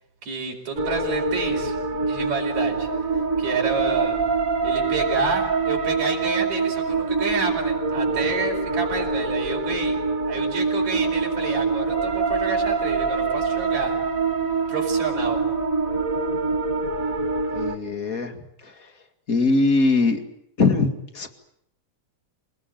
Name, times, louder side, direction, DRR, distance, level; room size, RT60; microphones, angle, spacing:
voice 1, 0.2-1.8 2.0-2.9 3.4-4.2 4.6-10.0 10.3-14.0 14.7-15.4, right 4 dB, 65° right, 0 dB, 5.9 m, -29 dB
sound 1, 0.8-17.8, right 4 dB, 30° right, 1.9 m, -25 dB
voice 2, 17.5-18.4 18.6-18.7 19.3-20.2 20.6-21.3, left 3 dB, 30° left, 7 dB, 2.2 m, -21 dB
28.0 x 19.0 x 9.2 m, 0.76 s
omnidirectional pair, 3.5 m